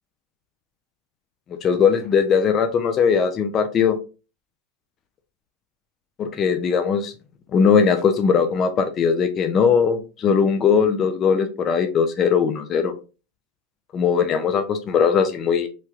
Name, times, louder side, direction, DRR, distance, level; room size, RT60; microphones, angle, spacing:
voice 1, 1.6-4.0 6.2-7.1 7.5-12.9 13.9-15.7, left 6 dB, 35° left, 7 dB, 0.4 m, -19 dB
3.0 x 2.3 x 2.8 m, 0.32 s
supercardioid pair, 115°, 0 cm